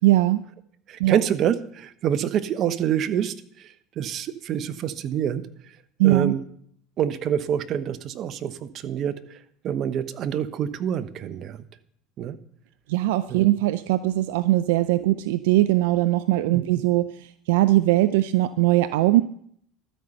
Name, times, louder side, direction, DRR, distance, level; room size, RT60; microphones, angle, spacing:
voice 1, 0.0-0.5 1.0-1.2 6.0-6.4 12.9-19.2, right 16 dB, 80° right, 14 dB, 0.4 m, -20 dB
voice 2, 0.9-5.5 6.0-6.4 7.0-11.6 12.2-12.4 13.3-13.5, right 9 dB, 50° right, 13 dB, 0.9 m, -27 dB
12.5 x 5.5 x 7.7 m, 0.66 s
hypercardioid pair, 90°, 0 cm